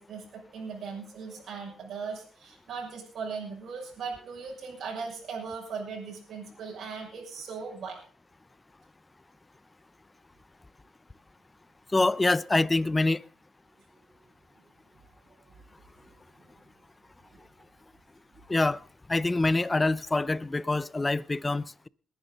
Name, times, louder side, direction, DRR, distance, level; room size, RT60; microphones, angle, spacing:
voice 1, 0.0-8.0 15.5-15.6 17.3-17.5, right 5 dB, 65° right, 6.0 m, -38 dB
voice 2, 11.9-13.2 18.5-18.8 19.1-21.9, left 2 dB, 20° left, 0.5 m, -25 dB
21.0 x 10.5 x 3.9 m
cardioid pair, 90°, 0 cm